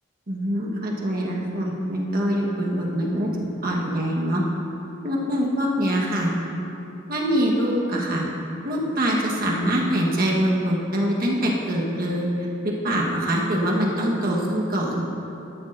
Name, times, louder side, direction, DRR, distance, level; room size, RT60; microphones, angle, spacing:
voice 1, 0.3-4.4 5.0-6.3 7.1-8.3 8.6-12.3 12.8-15.0, equal, 50° right, -2 dB, 1.4 m, -24 dB
12.5 x 12.0 x 2.7 m, 3.0 s
head